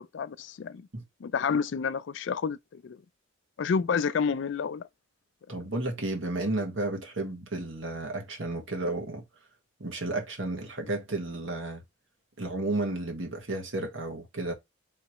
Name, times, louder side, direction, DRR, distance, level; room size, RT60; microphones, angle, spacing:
voice 1, 0.0-0.9 1.2-3.0 3.6-4.8, left 6 dB, 65° left, 0.3 m, -29 dB
voice 2, 5.5-9.2 9.8-11.8 12.4-14.5, right 2 dB, 70° right, 1.5 m, -32 dB
3.9 x 3.3 x 3.0 m
head